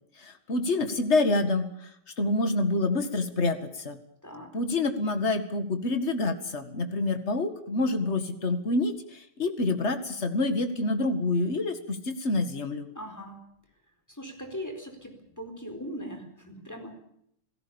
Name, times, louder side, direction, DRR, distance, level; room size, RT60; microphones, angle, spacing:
voice 1, 0.2-1.9 2.2-4.0 4.5-12.9, left 2 dB, 30° left, 8 dB, 1.2 m, -27 dB
voice 2, 4.2-4.6 12.9-13.4 14.1-17.0, equal, 5° left, 4 dB, 4.1 m, -40 dB
28.5 x 17.5 x 7.1 m, 0.72 s
omnidirectional pair, 4.1 m